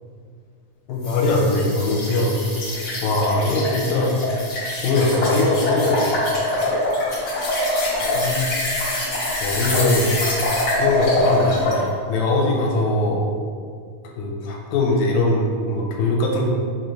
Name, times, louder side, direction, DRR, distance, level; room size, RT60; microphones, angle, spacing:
voice 1, 0.9-2.4 3.0-4.1 4.8-6.2 8.2-8.5 9.4-10.5 10.8-13.3 14.2-16.4, left 2 dB, 80° left, -1 dB, 1.9 m, -21 dB
sound 1, 1.0-11.8, left 1 dB, 60° left, 1.0 m, -24 dB
5.0 x 2.5 x 3.0 m, 2.1 s
omnidirectional pair, 3.3 m